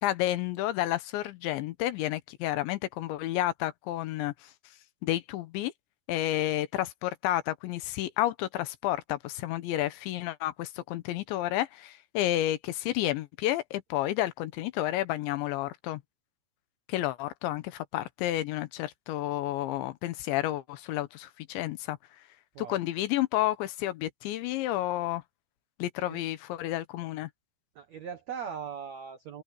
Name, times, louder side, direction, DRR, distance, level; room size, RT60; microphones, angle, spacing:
voice 1, 0.0-4.5 5.0-5.7 6.1-16.0 16.9-22.0 22.6-25.2 25.8-27.3, left 14 dB, 75° left, 3.2 m, -31 dB
voice 2, 27.7-29.4, right 7 dB, 85° right, 1.5 m, -39 dB
open air
omnidirectional pair, 5.5 m